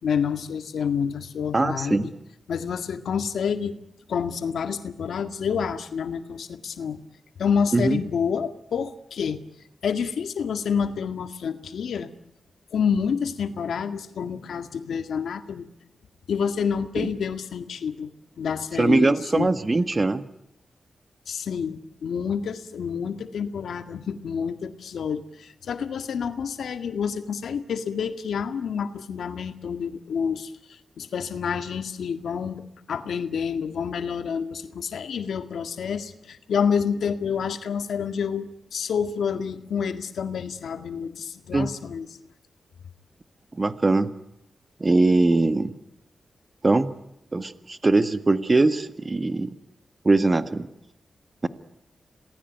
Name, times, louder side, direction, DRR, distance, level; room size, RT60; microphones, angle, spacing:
voice 1, 0.0-2.1 2.5-3.8 4.1-7.0 7.4-9.4 9.8-12.1 12.7-15.7 16.3-18.1 18.4-19.5 21.3-42.1, left 6 dB, 85° left, 9 dB, 1.9 m, -28 dB
voice 2, 1.5-2.1 7.7-8.0 17.0-17.1 18.8-20.2 41.5-41.7 43.5-44.1 44.8-45.7 46.6-46.9 47.3-49.5 50.0-50.7 51.4-51.5, right 2 dB, 35° right, 12 dB, 1.6 m, -21 dB
27.5 x 19.0 x 9.3 m, 0.83 s
cardioid pair, 60°, 0 cm